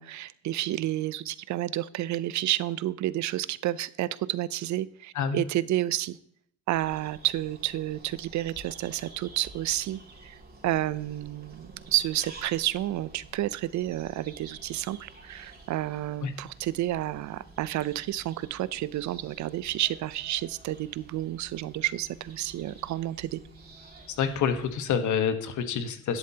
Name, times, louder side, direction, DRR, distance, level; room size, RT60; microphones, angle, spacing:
voice 1, 0.0-6.2 6.7-23.4, right 14 dB, 70° right, 18 dB, 0.5 m, -30 dB
sound 1, 6.7-24.8, right 2 dB, 30° right, 2.8 m, -50 dB
voice 2, 24.1-26.2, left 7 dB, 75° left, 8 dB, 1.3 m, -27 dB
11.5 x 11.0 x 2.9 m, 0.69 s
cardioid pair, 90°, 30 cm